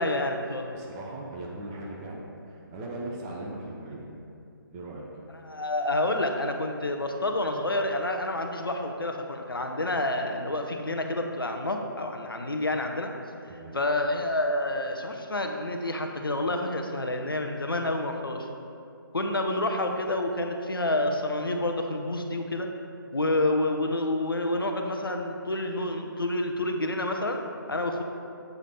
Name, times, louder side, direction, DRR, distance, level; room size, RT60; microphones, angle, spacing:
voice 1, 0.0-0.8 5.4-13.1 13.7-18.5 19.1-22.7 23.1-27.4 27.7-28.0, left 1 dB, 75° left, 4 dB, 0.8 m, -28 dB
voice 2, 0.7-4.1 4.7-5.2 13.5-13.8, right 2 dB, 10° right, -3 dB, 0.5 m, -39 dB
8.0 x 5.0 x 4.2 m, 2.5 s
figure-of-eight pair, 145°, 12 cm